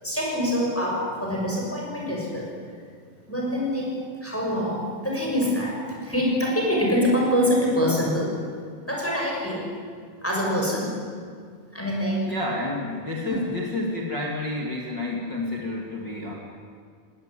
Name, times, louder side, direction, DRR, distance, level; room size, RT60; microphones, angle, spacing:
voice 1, 0.0-2.5 3.3-3.9 4.2-5.8 6.0-8.3 8.9-9.6 10.2-10.9 11.7-12.2 13.2-13.4, equal, 5° left, -3 dB, 6.1 m, -25 dB
voice 2, 12.3-16.3, left 2 dB, 35° left, -2 dB, 2.2 m, -30 dB
19.5 x 18.5 x 9.8 m, 2.1 s
omnidirectional pair, 4.8 m